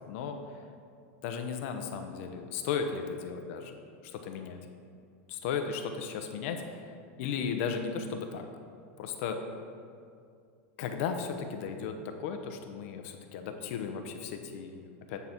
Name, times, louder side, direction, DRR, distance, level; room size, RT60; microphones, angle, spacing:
voice 1, 0.1-0.4 1.2-3.7 4.0-4.6 5.3-6.9 7.2-8.5 9.0-9.4 10.8-15.2, left 6 dB, 65° left, 5 dB, 0.8 m, -35 dB
9.4 x 4.1 x 5.9 m, 2.3 s
supercardioid pair, 135°, 8 cm